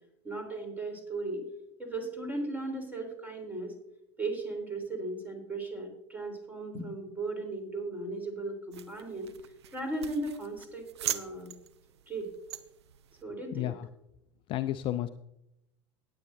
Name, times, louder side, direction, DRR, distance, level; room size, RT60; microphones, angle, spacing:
voice 1, 0.2-1.4 1.8-3.7 4.2-9.3 9.7-11.5 12.1-12.3 13.2-13.8, right 2 dB, 10° right, 4 dB, 3.5 m, -36 dB
sound 1, 8.7-13.2, right 11 dB, 65° right, 0.7 m, -41 dB
voice 2, 13.5-13.9 14.5-15.1, left 13 dB, 35° left, 12 dB, 0.4 m, -32 dB
19.0 x 8.3 x 2.6 m, 0.82 s
figure-of-eight pair, 80°, 15 cm